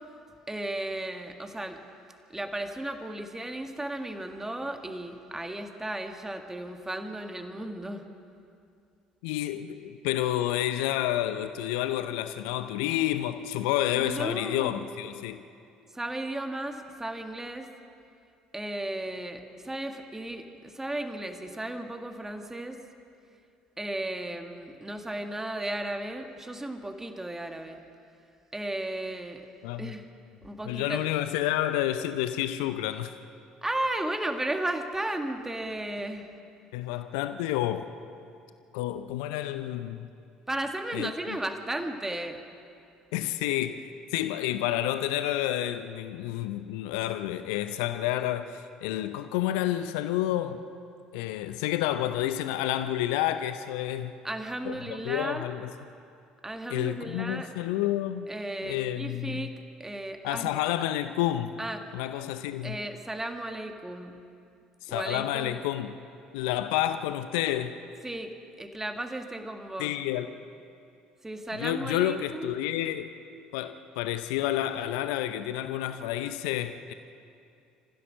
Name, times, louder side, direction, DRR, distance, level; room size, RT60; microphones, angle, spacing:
voice 1, 0.5-1.8 2.3-8.1 13.9-14.9 15.9-17.7 18.5-22.8 23.8-27.8 28.5-29.5 29.8-30.1 30.4-31.1 33.6-36.3 40.5-42.4 54.2-55.5 56.4-57.5 58.3-59.5 59.8-60.5 61.6-61.8 62.6-64.2 64.9-65.5 68.0-68.3 68.6-69.9 71.2-72.7, right 1 dB, 10° right, 5 dB, 1.8 m, -35 dB
voice 2, 9.2-15.4 29.6-29.9 30.7-33.2 36.7-37.9 38.7-40.1 40.9-41.4 43.1-43.9 44.1-50.6 51.1-54.1 54.6-55.7 56.7-58.3 58.6-59.5 60.2-61.6 61.9-62.8 64.8-66.0 66.3-67.8 69.8-70.3 71.6-73.1 73.5-76.9, left 13 dB, 70° left, 10 dB, 0.6 m, -29 dB
27.5 x 15.5 x 6.4 m, 2.5 s
figure-of-eight pair, 55°, 4 cm